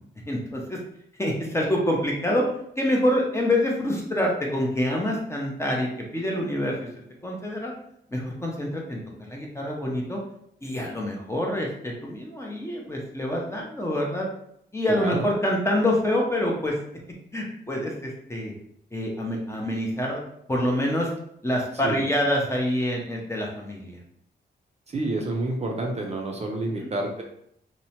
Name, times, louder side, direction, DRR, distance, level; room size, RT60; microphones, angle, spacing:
voice 1, 0.3-0.8 1.2-2.4 2.8-6.9 7.2-7.7 8.1-10.2 10.6-14.3 14.7-16.8 17.3-18.5 18.9-20.2 20.5-21.1 21.4-24.0 26.8-26.9, left 1 dB, 15° left, -1 dB, 0.5 m, -26 dB
voice 2, 14.9-15.2 21.8-22.1 24.9-27.2, right 2 dB, 35° right, 1 dB, 0.4 m, -29 dB
2.8 x 2.1 x 2.8 m, 0.71 s
wide cardioid pair, 125°, 18 cm